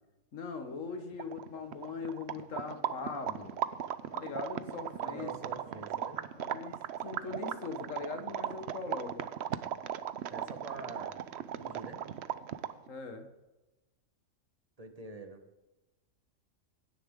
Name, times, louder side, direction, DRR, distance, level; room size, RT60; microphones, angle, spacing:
voice 1, 0.3-3.5 4.1-5.3 6.3-6.7 7.0-9.3 12.9-13.3, left 4 dB, 75° left, 6 dB, 1.7 m, -40 dB
sound 1, 0.9-1.0 1.1-12.9, right 10 dB, 60° right, 0.8 m, -37 dB
voice 2, 5.0-6.3 10.3-11.2 11.6-12.0 14.8-15.4, right 3 dB, 30° right, 6 dB, 1.2 m, -45 dB
16.0 x 10.5 x 3.7 m, 1.0 s
omnidirectional pair, 1.4 m